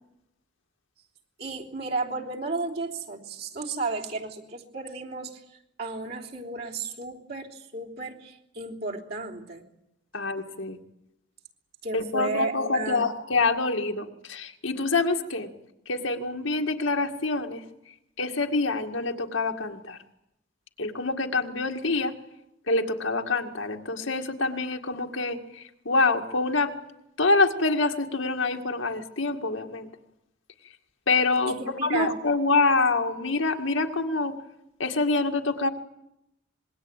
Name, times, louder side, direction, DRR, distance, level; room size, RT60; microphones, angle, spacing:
voice 1, 1.4-9.6 11.8-13.1 31.5-32.1, right 3 dB, 50° right, -1 dB, 3.3 m, -33 dB
voice 2, 10.1-10.8 11.9-15.5 15.9-17.6 18.2-20.0 20.8-22.1 22.7-26.7 27.2-29.9 31.1-31.5 31.8-34.3 34.8-35.7, left 3 dB, 75° left, 3 dB, 2.1 m, -26 dB
26.0 x 21.5 x 9.0 m, 0.85 s
head